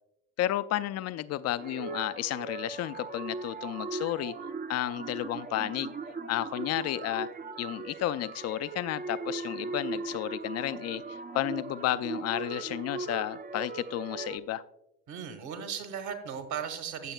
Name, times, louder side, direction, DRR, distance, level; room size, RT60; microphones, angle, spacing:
voice 1, 0.4-4.3 4.7-5.9 6.3-7.3 7.6-14.6, left 13 dB, 45° left, 15 dB, 0.5 m, -32 dB
sound 1, 1.6-14.4, right 4 dB, 25° right, 0.6 m, -39 dB
voice 2, 15.1-17.1, right 7 dB, 50° right, 8 dB, 1.6 m, -37 dB
16.0 x 7.0 x 2.3 m, 0.81 s
hypercardioid pair, 65°, 37 cm